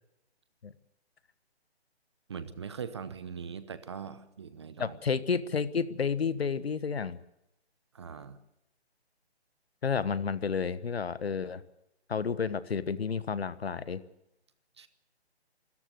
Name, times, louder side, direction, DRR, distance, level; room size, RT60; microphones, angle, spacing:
voice 1, 2.3-5.0 7.9-8.4 14.8-14.9, right 6 dB, 25° right, 13 dB, 0.8 m, -41 dB
voice 2, 4.8-7.2 9.8-11.6 12.1-14.0, left 6 dB, 65° left, 15 dB, 1.3 m, -31 dB
25.5 x 14.0 x 7.9 m, 0.83 s
hypercardioid pair, 160°, 33 cm